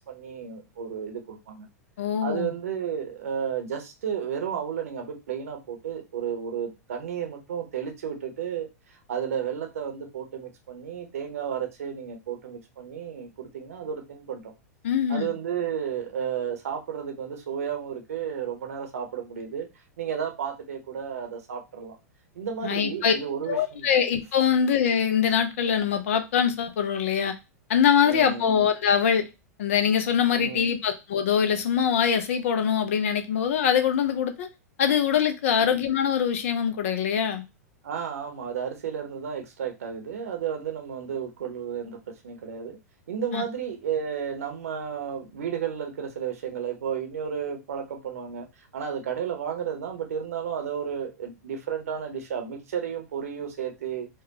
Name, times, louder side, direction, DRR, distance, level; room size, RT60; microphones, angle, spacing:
voice 1, 0.1-1.7 2.2-14.5 15.1-19.7 20.0-22.0 22.3-23.9 28.0-28.6 30.3-30.7 35.4-35.6 37.8-42.0 42.2-42.8 43.1-54.1, right 8 dB, 60° right, 0.9 m, -32 dB
voice 2, 2.0-2.5 14.8-15.3 22.6-23.1 23.5-27.3 27.7-29.2 29.6-34.5 34.8-37.4 43.3-43.4, left 8 dB, 55° left, 0.7 m, -23 dB
4.4 x 2.4 x 2.8 m
figure-of-eight pair, 95°, 9 cm